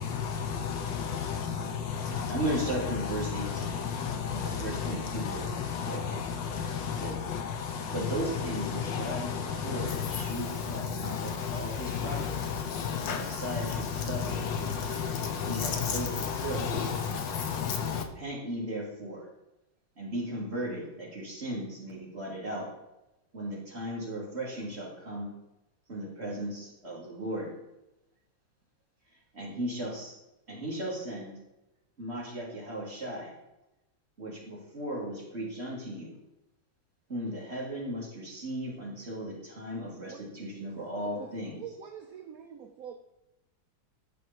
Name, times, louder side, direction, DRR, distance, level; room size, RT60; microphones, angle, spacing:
voice 1, 0.0-18.1, left 7 dB, 70° left, 6 dB, 1.5 m, -33 dB
voice 2, 2.1-3.9 4.3-6.0 6.6-7.1 7.9-9.3 9.6-12.4 13.1-14.5 15.5-16.7 17.9-19.3 20.0-22.7 23.3-25.3 25.9-27.5 29.3-30.1 30.5-31.4 32.0-33.3 34.2-36.1 37.1-41.6, right 1 dB, 30° right, -5 dB, 3.4 m, -36 dB
voice 3, 40.7-42.9, right 8 dB, 60° right, 5 dB, 1.0 m, -45 dB
13.5 x 5.0 x 4.5 m, 0.95 s
omnidirectional pair, 2.2 m